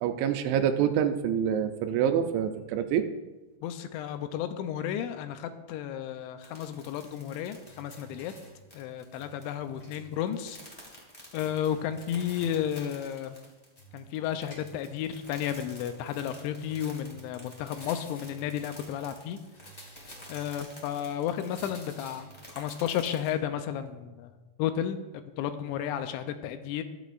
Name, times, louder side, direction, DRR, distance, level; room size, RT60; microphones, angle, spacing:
voice 1, 0.0-3.1, right 9 dB, 80° right, 7 dB, 2.9 m, -26 dB
voice 2, 3.6-8.3 8.7-10.6 11.3-13.4 13.9-19.4 20.3-24.3 24.6-26.8, left 10 dB, 80° left, 9 dB, 2.9 m, -33 dB
sound 1, 6.4-23.3, equal, 15° left, 1.2 m, -51 dB
sound 2, 7.7-8.6 9.1-10.1 10.3-10.4 11.4-12.6 13.8-15.0 16.1-17.2 17.7-18.5 19.5-20.6 21.5-22.4, right 1 dB, 45° left, 1.0 m, -51 dB
21.5 x 8.2 x 2.5 m, 1.1 s
omnidirectional pair, 5.4 m